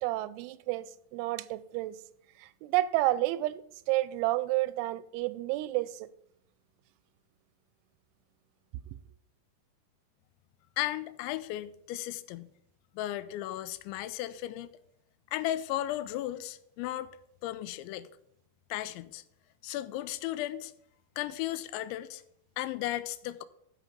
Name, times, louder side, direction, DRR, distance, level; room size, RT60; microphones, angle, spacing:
voice 1, 0.0-2.0 2.4-3.6 3.9-6.1, right 17 dB, 90° right, 3.0 m, -30 dB
voice 2, 10.8-12.5 13.0-14.7 15.3-17.1 17.4-18.1 18.7-19.2 19.6-20.7 21.2-22.2 22.6-23.4, left 14 dB, 85° left, 2.9 m, -35 dB
13.0 x 5.2 x 5.2 m
omnidirectional pair, 5.3 m